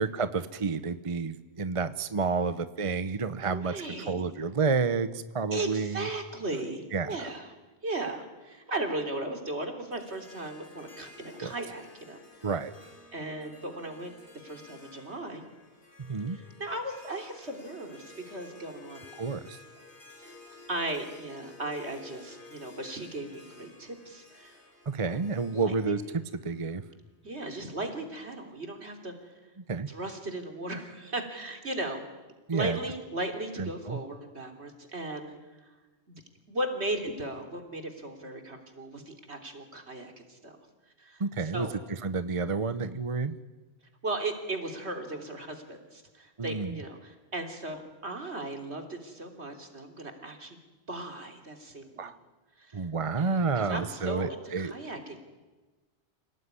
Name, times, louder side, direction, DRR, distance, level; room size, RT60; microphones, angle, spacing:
voice 1, 0.0-3.7 4.1-6.1 6.9-7.3 11.4-11.5 12.4-12.7 16.1-16.4 19.2-19.6 24.9-26.0 26.4-26.8 29.7-29.9 32.5-32.8 33.6-34.0 41.2-41.7 42.0-43.4 46.4-46.8 52.0-52.2 52.7-54.7, right 4 dB, 30° right, 12 dB, 0.9 m, -30 dB
voice 2, 3.5-4.2 5.5-7.5 7.8-12.2 13.1-14.1 14.4-15.4 16.3-19.0 20.2-20.3 20.7-24.6 25.0-25.2 25.5-26.0 27.2-29.3 29.9-32.0 32.5-35.4 36.1-36.2 36.5-40.6 41.0-41.8 44.0-50.6 50.9-52.1 52.6-52.9 53.1-55.2, right 2 dB, 70° right, 5 dB, 3.5 m, -37 dB
Harp, 9.9-27.2, left 3 dB, 50° left, 4.1 m, -53 dB
28.0 x 18.0 x 9.7 m, 1.2 s
omnidirectional pair, 1.1 m